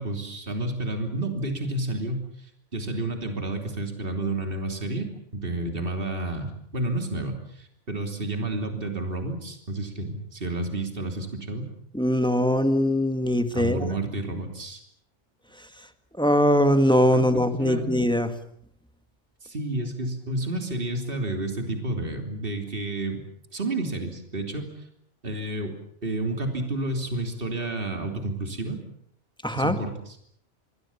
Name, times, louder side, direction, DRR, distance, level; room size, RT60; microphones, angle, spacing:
voice 1, 0.0-11.7 13.5-14.8 17.1-17.2 17.6-17.9 19.4-23.2 23.5-24.9 25.2-25.7 26.0-28.8 29.5-30.2, right 2 dB, 50° right, 4 dB, 3.4 m, -30 dB
voice 2, 11.9-13.9 16.2-18.3 29.4-29.8, equal, 5° left, 8 dB, 1.9 m, -21 dB
28.0 x 21.5 x 7.2 m, 0.67 s
omnidirectional pair, 1.2 m